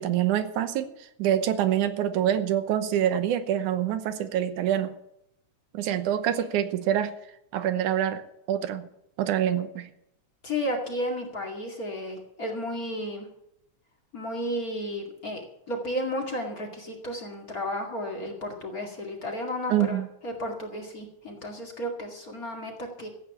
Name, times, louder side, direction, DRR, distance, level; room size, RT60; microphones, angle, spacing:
voice 1, 0.0-4.9 5.7-7.1 7.5-8.2 8.5-8.9 9.2-9.9 19.7-20.1, right 10 dB, 80° right, 10 dB, 2.4 m, -26 dB
voice 2, 10.4-13.3 14.1-15.4 15.7-20.0 20.2-23.1, equal, 30° left, 1 dB, 2.4 m, -33 dB
15.0 x 8.7 x 6.9 m, 0.79 s
omnidirectional pair, 3.5 m